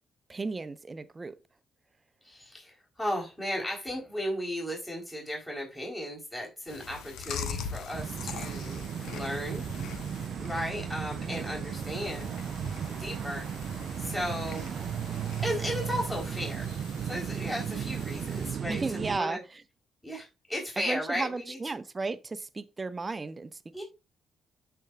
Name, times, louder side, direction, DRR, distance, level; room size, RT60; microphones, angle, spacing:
voice 1, 0.3-1.4 11.2-11.4 18.7-19.6 20.8-23.8, right 3 dB, 30° right, 0.9 m, -34 dB
voice 2, 2.2-8.8 9.1-9.6 10.4-12.3 12.9-13.5 14.0-14.7 15.4-16.7 17.0-19.4 20.0-21.6 23.7-23.8, equal, 10° left, 3.9 m, -35 dB
Chewing mastication, 6.7-18.5, left 6 dB, 70° left, 1.0 m, -43 dB
sound 1, 7.9-19.2, right 8 dB, 60° right, 0.5 m, -35 dB
13.0 x 4.6 x 2.4 m
hypercardioid pair, 45°, 0 cm